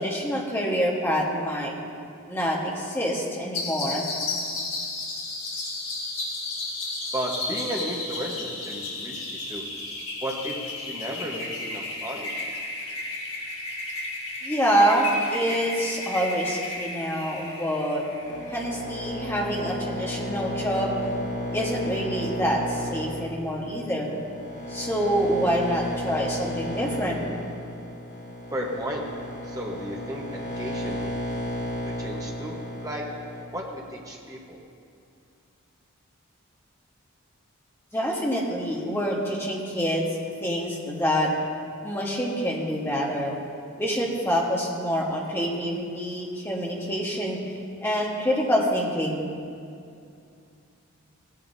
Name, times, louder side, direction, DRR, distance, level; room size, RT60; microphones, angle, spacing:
voice 1, 0.0-1.7 2.3-4.1 14.4-18.1 18.5-20.9 21.5-24.1 24.7-27.2 37.9-40.1 40.4-41.3 41.8-43.3 43.8-47.6 47.8-49.3, equal, 10° left, -3 dB, 1.3 m, -26 dB
sound 1, 3.5-18.8, left 2 dB, 70° left, 2.0 m, -33 dB
voice 2, 7.1-9.6 10.2-12.3 28.5-29.0 29.4-31.2 32.0-32.5 32.8-33.0 33.5-34.6, equal, 15° right, -2 dB, 1.2 m, -34 dB
sound 2, 18.2-33.4, left 1 dB, 50° left, 2.8 m, -33 dB
16.5 x 10.5 x 2.7 m, 2.5 s
head